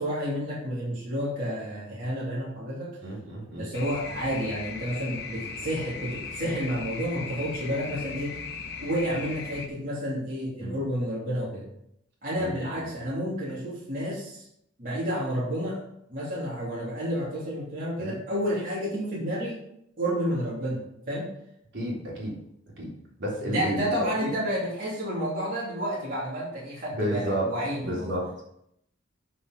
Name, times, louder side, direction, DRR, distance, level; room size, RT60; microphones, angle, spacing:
voice 1, 0.0-3.0 3.5-8.4 8.8-11.7 12.2-14.4 14.8-15.8 16.1-19.6 20.0-20.8 21.1-21.3 23.4-28.2, equal, 45° right, -8 dB, 3.0 m, -30 dB
voice 2, 3.0-3.7 10.6-10.8 12.4-12.9 18.0-18.2 21.7-22.4 22.8-22.9 23.2-24.1 26.9-27.5 27.8-28.4, right 1 dB, 65° right, -4 dB, 3.5 m, -31 dB
sound 1, 3.7-9.7, left 5 dB, 55° left, 1.3 m, -38 dB
8.2 x 6.3 x 5.3 m, 0.75 s
head